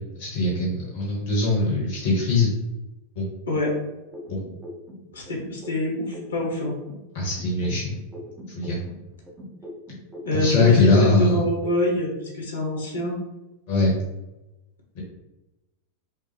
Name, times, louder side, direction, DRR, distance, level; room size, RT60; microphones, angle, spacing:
voice 1, 0.2-2.5 3.2-3.3 4.3-4.4 7.1-8.0 8.5-8.8 10.4-11.4 13.7-14.0 14.9-15.0, left 2 dB, 55° left, -3 dB, 1.1 m, -21 dB
sound 1, 4.1-7.1 7.4-11.1 11.4-12.1, left 1 dB, 15° right, 0.7 m, -41 dB
voice 2, 5.1-6.7 10.2-13.2, left 1 dB, 75° left, -1 dB, 1.3 m, -25 dB
5.8 x 2.0 x 3.3 m, 1.0 s
figure-of-eight pair, 90°, 0 cm